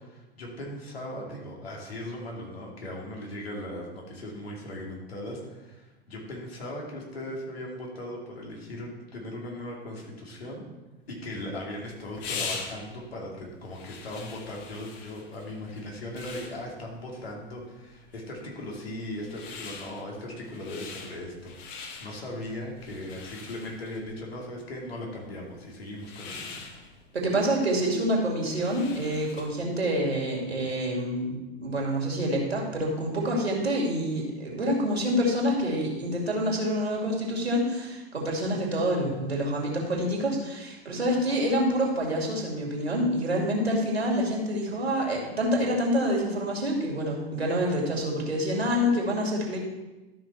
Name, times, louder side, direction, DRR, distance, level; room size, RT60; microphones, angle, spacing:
voice 1, 0.0-10.6 11.1-26.7, left 1 dB, 75° left, -1 dB, 2.7 m, -38 dB
sound 1, 11.2-29.7, left 5 dB, 40° left, 1.4 m, -43 dB
voice 2, 27.1-49.6, equal, 85° right, -1 dB, 2.5 m, -27 dB
12.5 x 5.8 x 4.3 m, 1.1 s
figure-of-eight pair, 95°, 31 cm